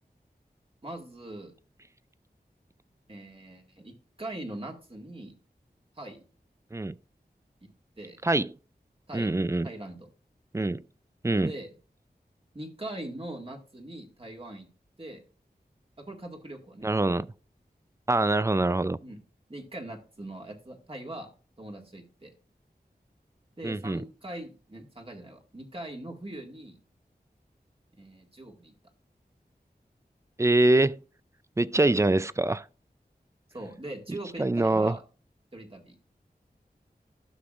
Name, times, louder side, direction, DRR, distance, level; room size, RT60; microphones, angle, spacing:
voice 1, 0.8-1.5 3.1-3.9 4.2-5.3 6.0-6.2 8.0-8.2 9.1-9.3 9.6-10.1 11.4-11.7 12.5-14.7 15.0-15.2 16.0-16.9 19.0-19.2 19.5-21.3 21.6-22.3 23.6-26.8 28.0-28.7 33.5-35.0 35.5-36.0, right 1 dB, 35° right, 1.9 m, -41 dB
voice 2, 8.2-8.5 9.1-9.7 10.5-10.8 11.2-11.5 16.8-17.3 18.1-19.0 23.6-24.0 30.4-30.9 31.6-32.6 34.1-35.0, right 2 dB, 15° right, 0.4 m, -24 dB
13.0 x 6.1 x 2.4 m
wide cardioid pair, 40°, 17 cm